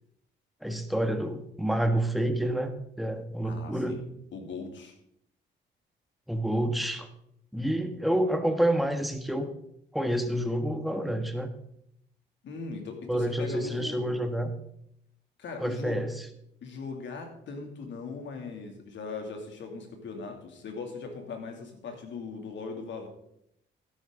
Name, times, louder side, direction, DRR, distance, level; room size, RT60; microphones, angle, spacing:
voice 1, 0.6-2.7 3.0-4.0 6.3-7.1 7.5-9.5 9.9-11.5 13.1-14.5 15.6-16.3, right 1 dB, ahead, 6 dB, 1.5 m, -28 dB
voice 2, 3.4-4.0 4.3-4.9 12.4-14.3 15.4-16.0 16.6-23.1, left 4 dB, 65° left, 4 dB, 2.7 m, -39 dB
12.5 x 11.5 x 3.8 m, 0.75 s
cardioid pair, 90°, 20 cm